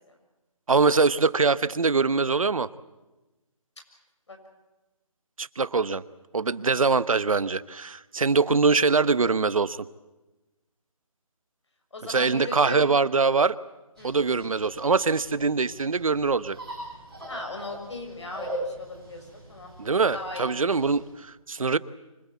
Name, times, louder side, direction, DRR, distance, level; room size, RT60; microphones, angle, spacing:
voice 1, 0.7-2.7 5.4-6.0 6.3-9.8 12.1-13.6 14.0-16.6 19.8-21.8, right 4 dB, 70° right, 16 dB, 1.0 m, -23 dB
voice 2, 11.9-12.9 14.0-14.2 17.3-19.7 20.1-20.5, left 2 dB, 55° left, 4 dB, 6.6 m, -38 dB
sound 1, 13.9-21.1, right 1 dB, 5° left, 7.7 m, -41 dB
25.5 x 21.0 x 8.3 m, 1.1 s
hypercardioid pair, 180°, 18 cm